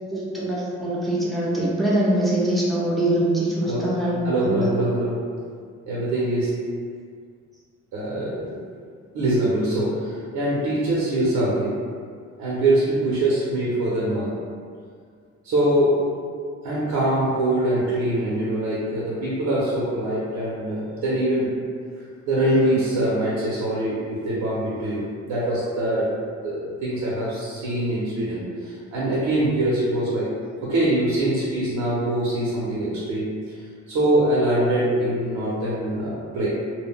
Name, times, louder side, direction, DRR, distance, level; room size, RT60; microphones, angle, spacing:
voice 1, 0.1-4.7, right 1 dB, ahead, -6 dB, 0.6 m, -23 dB
voice 2, 4.2-5.3 5.9-6.7 7.9-8.6 9.1-11.8 12.4-14.3 15.4-16.0 16.6-21.5 22.2-26.1 26.4-30.3 30.6-33.3 33.9-36.5, right 1 dB, 90° right, -7 dB, 0.7 m, -23 dB
2.1 x 2.1 x 3.6 m, 2.1 s
cardioid pair, 90°, 30 cm